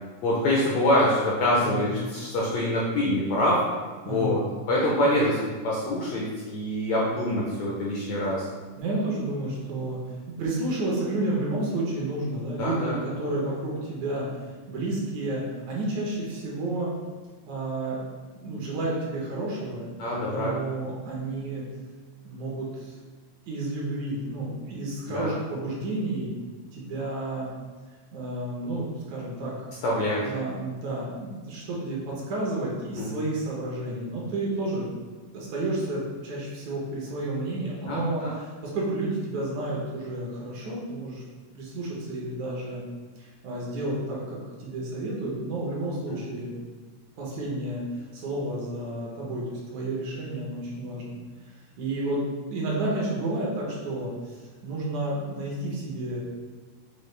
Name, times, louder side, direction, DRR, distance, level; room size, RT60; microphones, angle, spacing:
voice 1, 0.2-3.6 4.1-4.4 4.7-8.5 12.6-13.0 20.0-20.5 25.1-25.3 29.8-30.2 33.0-33.1 37.9-38.3 46.1-46.2, left 1 dB, 80° left, -4 dB, 1.5 m, -25 dB
voice 2, 1.6-2.0 4.0-4.4 8.8-14.3 14.7-16.9 17.5-18.0 18.3-21.6 22.2-23.0 23.5-26.3 26.7-27.5 28.1-29.7 30.2-34.9 35.3-41.2 41.5-42.8 43.2-46.6 47.2-51.2 51.4-52.2 52.5-56.2, right 2 dB, 70° right, -4 dB, 2.1 m, -31 dB
6.8 x 2.4 x 3.2 m, 1.4 s
omnidirectional pair, 3.6 m